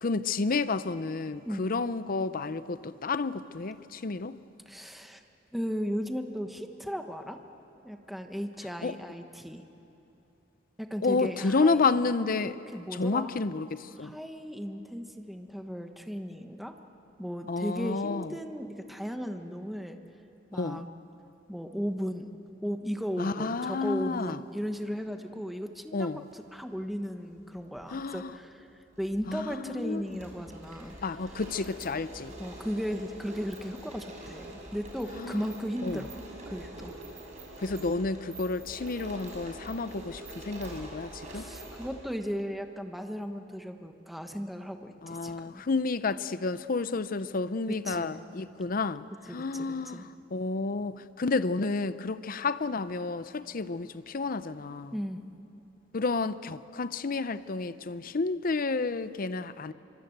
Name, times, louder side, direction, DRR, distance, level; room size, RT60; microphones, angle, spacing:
voice 1, 0.0-4.4 8.8-8.9 11.0-12.6 12.9-14.1 17.5-18.3 20.5-20.8 23.2-24.4 25.9-26.2 27.9-28.3 29.3-30.0 31.0-32.3 35.1-35.4 35.8-36.1 37.6-41.4 45.0-54.9 55.9-59.7, left 3 dB, 50° left, 14 dB, 0.6 m, -30 dB
voice 2, 4.7-5.2 5.5-7.4 7.8-9.6 10.8-11.9 12.7-13.3 14.0-16.8 17.2-20.0 20.5-20.9 21.5-22.3 22.6-28.7 29.0-30.9 32.4-36.1 36.5-36.9 41.3-45.6 47.8-48.2 49.3-50.1 54.9-55.2, equal, ahead, 5 dB, 1.2 m, -36 dB
sound 1, 26.1-26.3 27.4-28.1 28.4-28.5 28.9-41.9, right 1 dB, 40° right, 6.7 m, -45 dB
25.0 x 24.0 x 8.0 m, 2.9 s
head